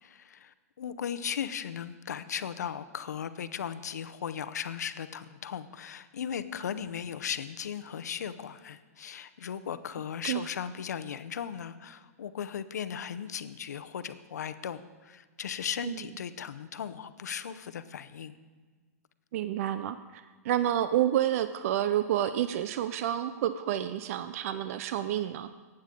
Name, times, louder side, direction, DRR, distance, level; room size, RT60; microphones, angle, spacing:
voice 1, 0.0-18.4, left 8 dB, 85° left, 11 dB, 0.7 m, -37 dB
voice 2, 19.3-25.5, right 11 dB, 60° right, 11 dB, 0.5 m, -29 dB
19.0 x 8.8 x 3.7 m, 1.4 s
hypercardioid pair, 130°, 9 cm